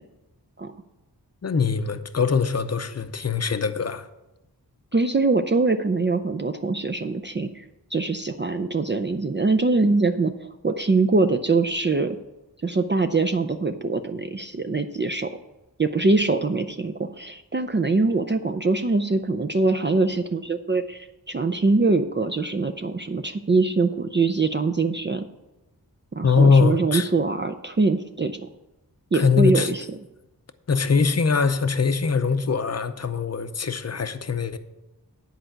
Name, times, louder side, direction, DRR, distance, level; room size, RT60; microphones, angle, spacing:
voice 1, 1.4-4.1 26.2-27.1 29.1-29.7 30.7-34.6, left 5 dB, 40° left, 0.7 m, -22 dB
voice 2, 4.9-12.2 12.6-15.3 15.8-25.3 26.1-28.5 29.1-30.0, right 3 dB, 30° right, 0.5 m, -23 dB
10.0 x 4.6 x 7.7 m
wide cardioid pair, 70°, 40 cm